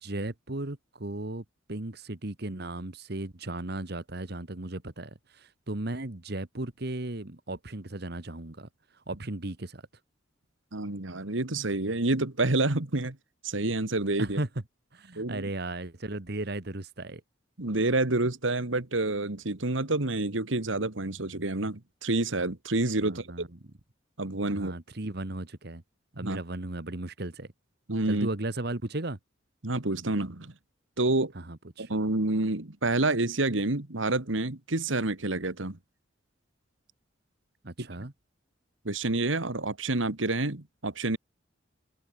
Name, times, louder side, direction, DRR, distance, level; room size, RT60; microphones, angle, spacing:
voice 1, 0.0-9.8 14.2-14.5 14.9-17.2 23.0-23.5 24.5-25.8 26.2-27.5 28.1-29.2 31.3-31.9 37.6-38.1, right 2 dB, 55° right, 1.6 m, -36 dB
voice 2, 10.7-13.2 13.4-14.4 15.2-15.5 17.6-23.5 24.2-24.7 26.2-26.4 27.9-28.3 29.6-30.5 31.0-31.3 31.8-35.8 37.8-37.9 38.9-41.2, right 2 dB, 85° right, 2.0 m, -28 dB
open air
head